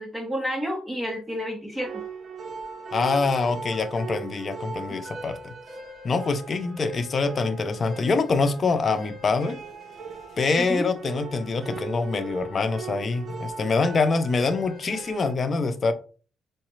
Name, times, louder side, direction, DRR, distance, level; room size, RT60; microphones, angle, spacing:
voice 1, 0.0-1.9 10.6-10.9, equal, 10° right, 0.9 m, -30 dB
sound 1, 1.8-15.3, right 5 dB, 45° right, 0.8 m, -39 dB
voice 2, 2.9-5.5 6.0-9.6 10.4-15.9, left 4 dB, 40° left, 0.5 m, -25 dB
4.8 x 2.1 x 3.0 m
cardioid pair, 90°, 0 cm